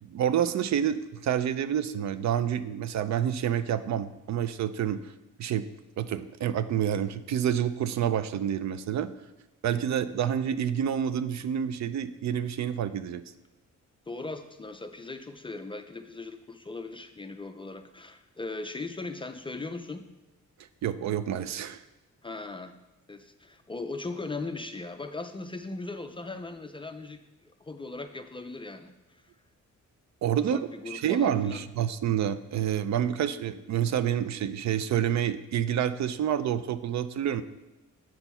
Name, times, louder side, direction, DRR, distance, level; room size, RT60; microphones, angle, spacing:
voice 1, 0.0-5.1 5.4-5.6 6.0-9.1 9.6-13.2 20.8-21.8 30.2-30.6 30.9-37.4, right 9 dB, 65° right, 13 dB, 0.5 m, -28 dB
voice 2, 14.1-20.0 22.2-22.7 23.1-28.9 30.4-31.6, left 3 dB, 20° left, 7 dB, 0.3 m, -39 dB
7.9 x 4.4 x 5.5 m, 1.0 s
wide cardioid pair, 145°, 30 cm